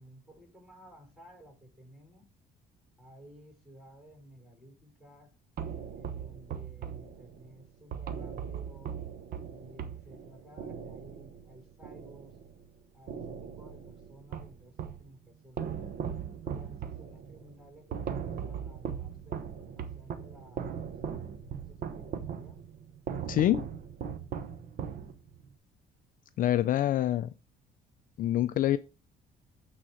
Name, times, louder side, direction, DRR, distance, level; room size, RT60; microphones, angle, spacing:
voice 1, 0.0-2.3 3.0-5.4 5.9-9.0 9.5-12.4 12.9-15.9 16.4-21.3 21.6-22.6, equal, ahead, 1 dB, 5.2 m, -55 dB
sound 1, 5.6-12.7 13.1-15.1 15.6-25.5, right 7 dB, 60° right, 1.1 m, -39 dB
voice 2, 23.3-23.7 26.4-27.3 28.2-28.8, left 12 dB, 55° left, 13 dB, 0.4 m, -26 dB
8.9 x 4.0 x 4.9 m, 0.31 s
cardioid pair, 110°, 17 cm